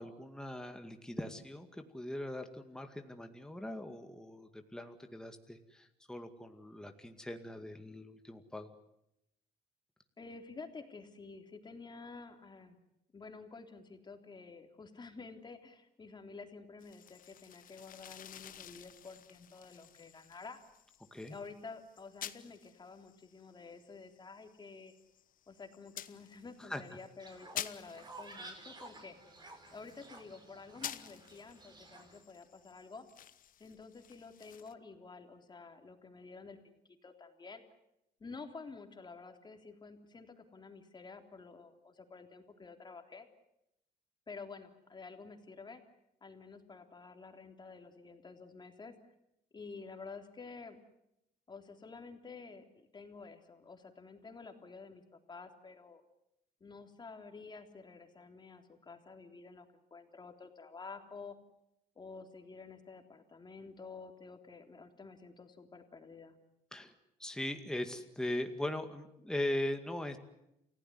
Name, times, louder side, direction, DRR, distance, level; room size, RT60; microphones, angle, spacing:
voice 1, 0.0-8.7 21.1-21.3 26.6-26.8 66.7-66.9 67.2-70.2, left 1 dB, 5° left, 6 dB, 2.1 m, -40 dB
voice 2, 10.2-12.8 13.1-20.6 21.3-24.9 25.5-29.2 29.7-33.1 33.6-37.6 38.2-43.3 44.3-45.8 46.2-49.0 49.5-50.8 51.5-55.0 55.3-56.0 56.6-59.7 59.9-61.4 62.0-66.4, left 4 dB, 25° left, 5 dB, 3.5 m, -50 dB
sound 1, 16.8-34.7, left 10 dB, 55° left, 1.2 m, -51 dB
Fowl, 27.2-32.2, right 2 dB, 25° right, 5.5 m, -53 dB
29.0 x 16.5 x 9.5 m, 0.84 s
cardioid pair, 110°, 17 cm